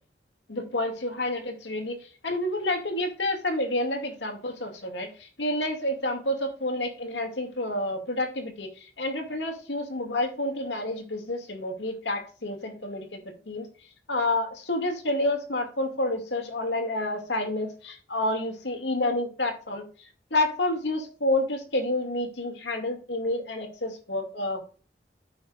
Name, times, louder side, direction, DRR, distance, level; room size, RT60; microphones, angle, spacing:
voice 1, 0.5-8.7 9.0-13.2 13.5-13.7 14.1-19.9 20.3-24.7, left 1 dB, 90° left, 4 dB, 2.3 m, -29 dB
14.5 x 5.8 x 2.5 m, 0.40 s
head